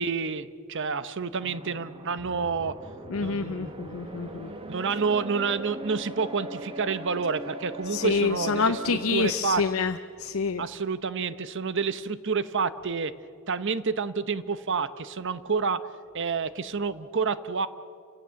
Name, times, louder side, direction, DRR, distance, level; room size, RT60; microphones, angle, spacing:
voice 1, 0.0-2.8 3.2-3.9 4.7-9.6 10.6-13.1 13.5-15.8 16.1-17.7, right 5 dB, 60° right, 14 dB, 0.9 m, -29 dB
sound 1, 1.4-9.1, right 1 dB, 25° right, 1.6 m, -40 dB
voice 2, 3.1-4.5 7.9-9.9 10.2-10.6, left 5 dB, 75° left, 8 dB, 0.7 m, -27 dB
29.5 x 16.5 x 7.6 m, 2.5 s
head